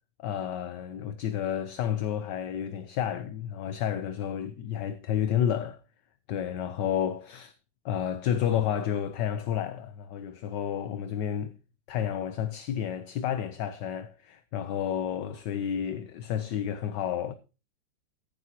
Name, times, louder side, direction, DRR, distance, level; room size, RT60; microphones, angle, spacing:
voice 1, 0.2-5.8 6.3-7.5 7.8-11.5 11.9-17.3, left 9 dB, 65° left, 1.3 m, -31 dB
14.0 x 10.5 x 2.8 m
omnidirectional pair, 2.2 m